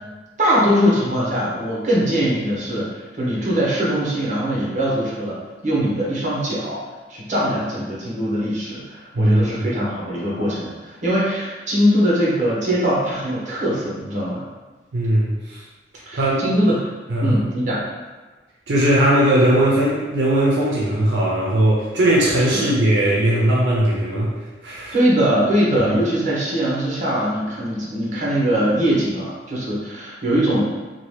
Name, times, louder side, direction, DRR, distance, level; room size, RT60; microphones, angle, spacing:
voice 1, 0.4-5.4 5.6-6.8 7.1-14.4 16.1-16.8 17.2-17.8 22.5-22.7 24.9-30.6, equal, 45° right, -6 dB, 0.9 m, -21 dB
voice 2, 9.1-9.6 14.9-15.6 16.1-16.5 17.1-17.4 18.7-24.3 24.6-24.9, right 1 dB, 85° right, -5 dB, 0.5 m, -18 dB
2.8 x 2.2 x 3.2 m, 1.2 s
head